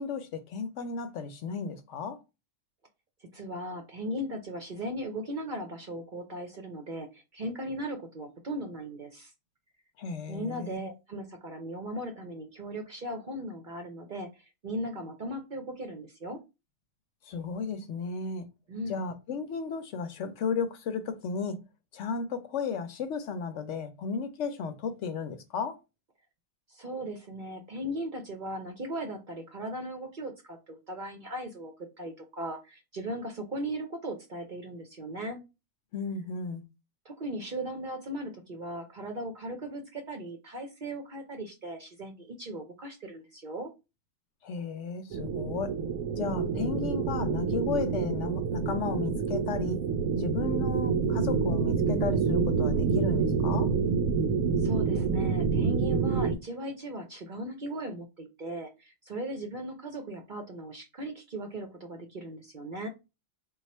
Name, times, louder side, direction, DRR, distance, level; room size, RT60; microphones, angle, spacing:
voice 1, 0.0-2.2 10.0-10.8 17.3-18.5 18.9-21.6 21.9-25.8 35.9-36.6 44.4-45.7 46.2-49.8 50.2-53.7, left 5 dB, 65° left, 0.9 m, -34 dB
voice 2, 3.3-9.3 10.3-16.4 18.7-19.0 26.7-35.4 37.0-43.7 54.6-62.9, right 1 dB, 45° right, 0.7 m, -38 dB
Deep Space, 45.1-56.4, right 5 dB, 75° right, 0.9 m, -27 dB
3.8 x 2.4 x 4.2 m
omnidirectional pair, 1.4 m